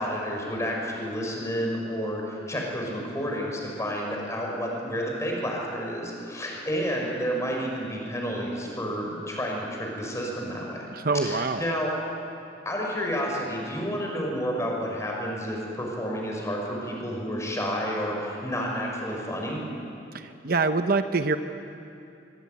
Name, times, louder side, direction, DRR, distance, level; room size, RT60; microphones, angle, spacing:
voice 1, 0.0-10.9 11.1-11.9 12.6-19.6, equal, 15° left, -1 dB, 6.3 m, -30 dB
voice 2, 10.9-11.6 20.1-21.4, right 3 dB, 55° right, 8 dB, 0.9 m, -25 dB
24.0 x 23.0 x 9.5 m, 2.7 s
head